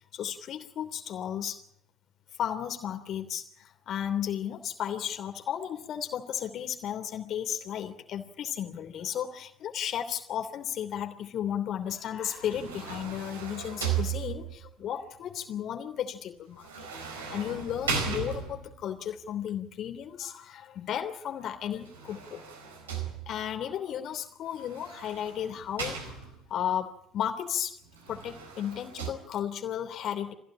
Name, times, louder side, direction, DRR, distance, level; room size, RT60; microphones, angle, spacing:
voice 1, 0.1-1.6 2.4-16.9 17.3-22.4 23.3-26.2 26.5-27.8 28.1-30.3, left 9 dB, 55° left, 5 dB, 3.1 m, -34 dB
sound 1, 12.3-14.7 16.6-18.9 21.7-23.6 24.6-26.6 27.9-29.1, right 7 dB, 80° right, 4.3 m, -36 dB
25.5 x 16.0 x 8.7 m, 0.73 s
figure-of-eight pair, 55°, 0 cm